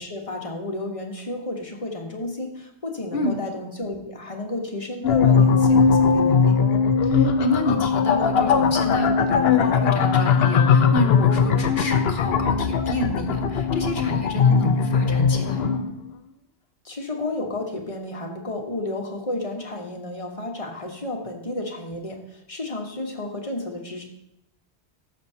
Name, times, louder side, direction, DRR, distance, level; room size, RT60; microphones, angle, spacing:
voice 1, 0.0-6.6 16.8-24.0, left 2 dB, 30° left, 1 dB, 1.3 m, -32 dB
sound 1, 5.0-15.9, left 6 dB, 65° left, 0.8 m, -19 dB
voice 2, 7.0-15.9, left 1 dB, 50° left, 3 dB, 1.2 m, -28 dB
14.5 x 6.6 x 2.8 m, 0.76 s
omnidirectional pair, 1.1 m